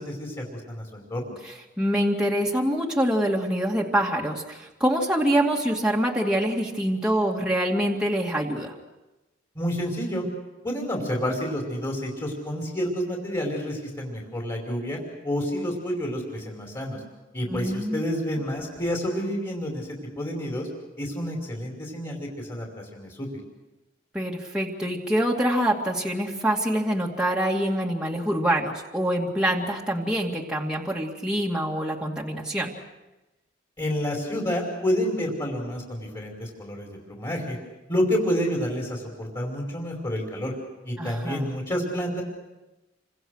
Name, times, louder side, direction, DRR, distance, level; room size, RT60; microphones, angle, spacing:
voice 1, 0.0-1.3 9.5-10.3 10.6-15.0 15.2-17.0 17.3-19.9 20.2-20.7 21.0-23.3 33.8-37.6 37.9-40.5 40.8-42.2, equal, 20° left, -1 dB, 5.1 m, -29 dB
voice 2, 1.4-8.7 17.5-18.0 24.1-32.7 41.0-41.5, right 1 dB, 5° right, -2 dB, 2.4 m, -25 dB
29.0 x 26.0 x 6.5 m, 1.0 s
head